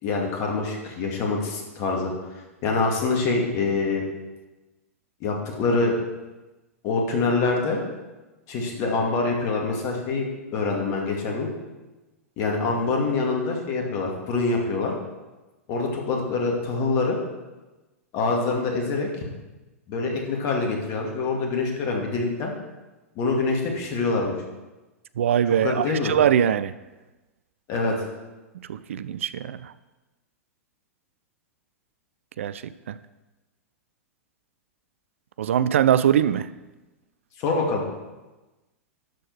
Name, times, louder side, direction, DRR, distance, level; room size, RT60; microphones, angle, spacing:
voice 1, 0.0-2.1 2.6-4.0 5.2-5.9 6.8-7.8 8.5-11.5 12.4-14.9 15.7-17.2 18.1-19.1 19.9-22.5 23.2-24.3 25.5-26.1 27.7-28.0 37.4-37.8, left 3 dB, 40° left, 2.4 m, -25 dB
voice 2, 25.2-26.7 28.7-29.7 32.4-32.6 32.9-33.0 35.4-36.5, right 9 dB, 65° right, 0.4 m, -22 dB
12.0 x 4.5 x 6.3 m
figure-of-eight pair, 95°, 8 cm